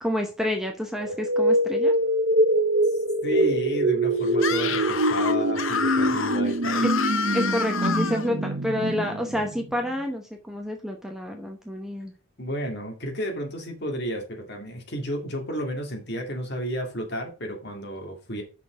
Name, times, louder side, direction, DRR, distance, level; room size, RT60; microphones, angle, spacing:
voice 1, 0.0-1.9 7.3-12.1, left 1 dB, ahead, 3 dB, 0.8 m, -29 dB
sound 1, 1.0-9.9, right 1 dB, 50° right, 1.0 m, -24 dB
voice 2, 3.2-6.9 12.4-18.4, equal, 50° left, 2 dB, 2.1 m, -32 dB
Screaming, 4.3-8.3, left 6 dB, 65° left, 0.9 m, -28 dB
6.1 x 5.9 x 4.9 m, 0.35 s
head